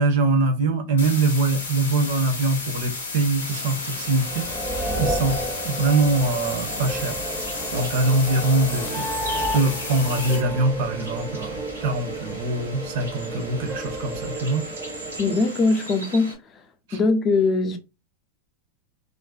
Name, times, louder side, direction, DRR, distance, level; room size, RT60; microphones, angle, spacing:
voice 1, 0.0-5.4 5.6-7.1 7.7-9.1 9.5-14.7 16.9-17.0, right 2 dB, 60° right, 0.6 m, -23 dB
sound 1, 1.0-10.4, left 3 dB, 80° left, 0.7 m, -33 dB
sound 2, 3.4-16.4, right 1 dB, 90° right, 1.0 m, -39 dB
sound 3, 4.0-15.4, right 1 dB, 20° right, 0.6 m, -32 dB
voice 2, 15.2-16.6 16.9-17.8, left 3 dB, 30° left, 0.5 m, -21 dB
2.5 x 2.2 x 2.3 m
hypercardioid pair, 95°, 0 cm